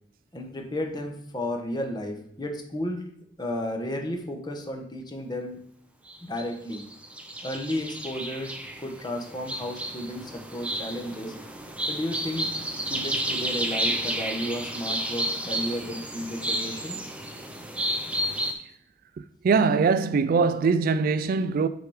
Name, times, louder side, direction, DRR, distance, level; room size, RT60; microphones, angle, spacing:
voice 1, 0.3-3.0 3.4-5.6 6.2-6.8 7.4-11.3 11.9-12.5 12.9-17.0, left 1 dB, 25° left, 1.1 m, -33 dB
sound 1, 6.1-6.4 6.7-18.5, right 1 dB, 5° right, 0.7 m, -31 dB
voice 2, 19.4-21.7, right 5 dB, 50° right, 0.3 m, -22 dB
6.7 x 4.9 x 4.8 m
head